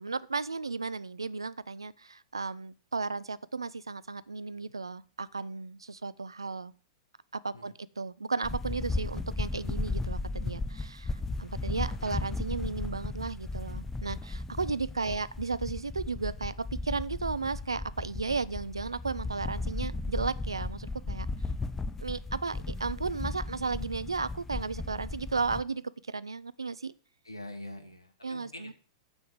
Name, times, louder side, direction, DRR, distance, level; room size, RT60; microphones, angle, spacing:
voice 1, 0.0-6.7 7.3-21.3 22.0-26.9 28.2-28.7, right 4 dB, 80° right, 18 dB, 0.4 m, -34 dB
sound 1, 8.4-25.6, left 3 dB, 10° left, 0.6 m, -35 dB
voice 2, 27.3-28.7, left 1 dB, 85° left, 5 dB, 1.8 m, -44 dB
7.0 x 6.1 x 7.7 m, 0.41 s
figure-of-eight pair, 100°, 3 cm